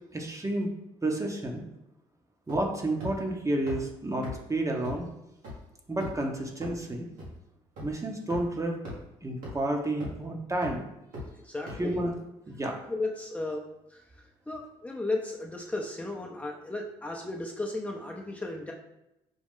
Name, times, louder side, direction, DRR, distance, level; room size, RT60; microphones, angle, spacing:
voice 1, 0.1-0.7 1.0-1.6 2.5-5.1 5.9-7.1 7.8-8.8 9.2-10.8 11.8-12.1 12.5-12.8, right 1 dB, 25° right, 1 dB, 0.9 m, -30 dB
sound 1, 2.5-2.7 3.0-3.1 3.7-3.8 4.2-4.3 4.8-4.9 5.4-5.5 6.0-6.2 6.6-6.7 7.2-7.3 7.8-7.9 8.3-8.4 8.8-9.0 9.4-9.5 10.0-10.2 10.6-10.7 11.1-11.2 11.7-11.8, left 1 dB, 80° right, 1.6 m, -38 dB
voice 2, 11.4-12.0 12.9-13.6 14.5-18.7, left 2 dB, 10° left, -1 dB, 0.7 m, -34 dB
5.3 x 2.3 x 3.6 m, 0.88 s
hypercardioid pair, 55°, 14 cm